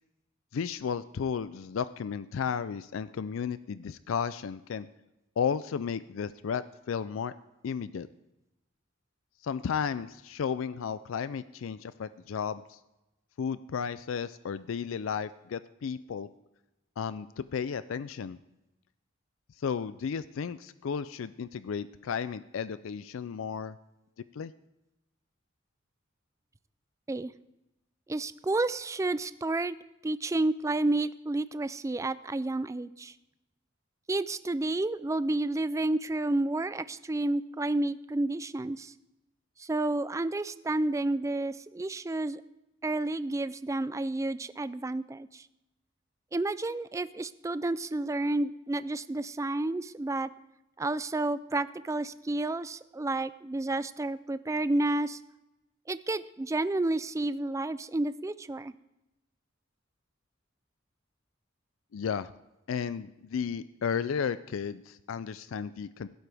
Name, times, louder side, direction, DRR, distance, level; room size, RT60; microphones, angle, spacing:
voice 1, 0.5-4.9 5.4-7.3 7.6-8.1 9.4-12.8 13.4-16.3 17.0-18.4 19.6-23.8 24.3-24.5 61.9-62.3 62.7-66.1, left 6 dB, 75° left, 15 dB, 0.4 m, -33 dB
voice 2, 28.1-29.8 30.0-33.1 34.1-38.9 39.6-42.4 42.8-45.5 46.3-50.3 50.8-55.2 55.9-58.7, right 2 dB, 15° right, 14 dB, 0.3 m, -30 dB
16.0 x 12.0 x 3.4 m, 0.93 s
head